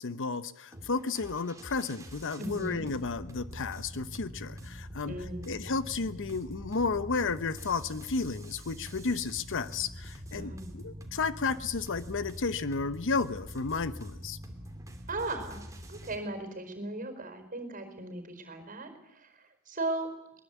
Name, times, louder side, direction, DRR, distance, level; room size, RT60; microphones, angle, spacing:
voice 1, 0.0-5.2 5.4-14.4, left 4 dB, 60° left, 14 dB, 0.8 m, -32 dB
sound 1, 0.7-16.2, equal, 15° right, 2.6 m, -45 dB
voice 2, 2.4-2.9 5.0-5.5 10.3-10.8 15.1-15.6 15.9-18.9 19.2-19.3 19.7-20.1, right 2 dB, 40° right, 7 dB, 4.7 m, -37 dB
22.0 x 20.0 x 8.4 m, 0.87 s
head